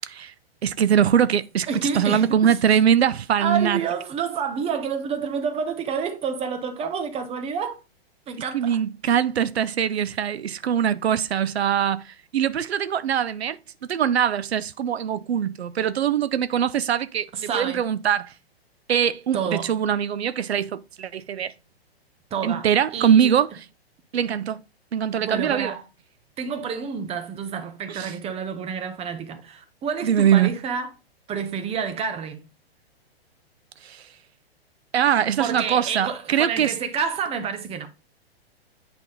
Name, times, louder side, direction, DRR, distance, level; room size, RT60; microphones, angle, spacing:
voice 1, 0.6-1.7 1.9-3.8 8.5-13.6 13.9-18.3 18.9-21.5 22.4-23.7 24.1-24.6 24.9-25.7 27.9-28.1 30.0-30.5 33.8-34.0 34.9-36.7, right 9 dB, 85° right, 0.5 m, -22 dB
voice 2, 1.7-2.6 3.4-7.8 8.3-8.8 17.3-17.8 19.3-19.7 22.3-22.7 22.9-23.3 25.2-25.8 26.4-30.9 31.3-32.5 35.4-37.9, right 6 dB, 20° right, 1.0 m, -29 dB
8.4 x 3.5 x 4.1 m
hypercardioid pair, 120°, 31 cm